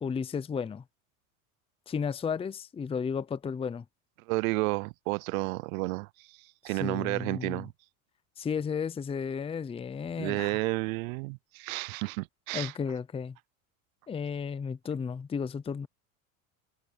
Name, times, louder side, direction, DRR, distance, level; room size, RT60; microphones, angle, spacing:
voice 1, 0.0-0.8 1.9-3.8 6.7-7.7 8.4-10.6 12.5-13.4 14.1-15.9, left 6 dB, 15° left, 0.6 m, -33 dB
voice 2, 4.3-6.4 6.6-7.7 10.2-12.7, right 24 dB, 85° right, 0.5 m, -31 dB
supercardioid pair, 120°, 40 cm